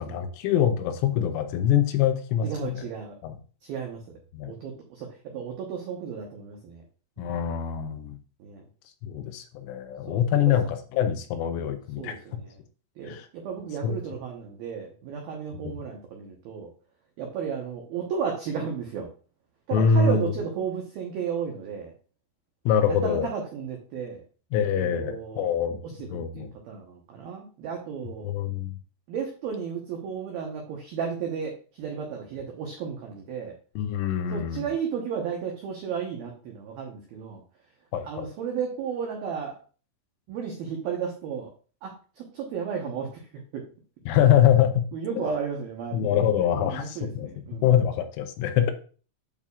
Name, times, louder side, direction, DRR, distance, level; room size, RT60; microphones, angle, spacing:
voice 1, 0.0-2.9 3.2-3.4 4.3-4.5 7.2-8.2 9.0-12.2 13.1-13.3 13.8-14.0 15.6-15.7 19.7-20.3 22.7-23.3 24.5-25.8 26.1-26.5 28.2-28.7 33.8-34.6 37.9-38.3 44.1-44.8 45.2-45.3 45.9-47.3 47.6-48.7, left 8 dB, 80° left, 7 dB, 3.1 m, -24 dB
voice 2, 2.4-3.2 3.6-4.2 4.5-6.8 7.2-7.5 8.4-8.6 10.1-10.2 12.0-12.6 13.0-16.7 17.2-19.1 19.7-21.9 22.9-24.2 24.5-25.5 26.0-28.3 29.1-33.6 34.3-37.4 38.0-39.6 40.3-41.5 41.8-43.2 43.5-43.7 44.9-46.2 46.6-47.7, right 6 dB, 90° right, 0 dB, 2.1 m, -34 dB
8.9 x 6.9 x 2.4 m, 0.37 s
omnidirectional pair, 6.0 m